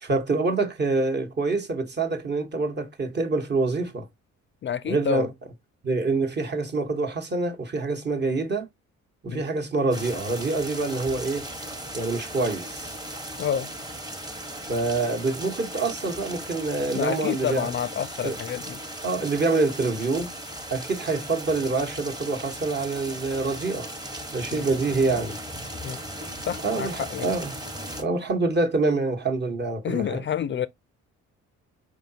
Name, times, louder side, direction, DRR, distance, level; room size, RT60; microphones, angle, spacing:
voice 1, 0.0-4.1 4.9-5.3 5.8-8.7 9.2-11.5 11.9-12.9 14.7-17.7 18.2-18.4 19.0-20.3 20.7-23.9 24.3-25.4 26.6-27.5 28.0-30.2, right 3 dB, 35° right, 1.1 m, -26 dB
voice 2, 4.6-5.3 9.3-9.5 13.4-13.7 16.9-18.8 24.5-24.7 25.8-26.0 26.4-27.3 29.8-30.7, left 8 dB, 40° left, 0.4 m, -29 dB
sound 1, 9.9-28.0, right 1 dB, 15° right, 1.1 m, -37 dB
4.7 x 3.4 x 2.7 m
cardioid pair, 90°, 30 cm